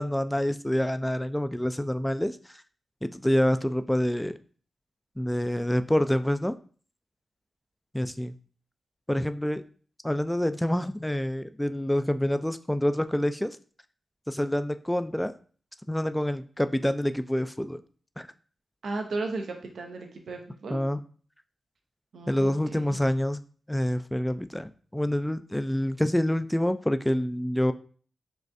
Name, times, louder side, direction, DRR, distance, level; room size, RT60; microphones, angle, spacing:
voice 1, 0.0-2.6 3.0-4.3 5.2-6.6 7.9-8.3 9.1-9.6 10.0-13.6 14.3-15.3 15.9-17.8 18.2-18.3 20.7-21.0 22.3-23.4 23.7-27.7, equal, 10° left, 10 dB, 0.3 m, -27 dB
voice 2, 18.8-20.8 22.1-23.1, right 3 dB, 75° right, 3 dB, 0.5 m, -35 dB
6.1 x 2.4 x 2.6 m, 0.43 s
cardioid pair, 45°, 0 cm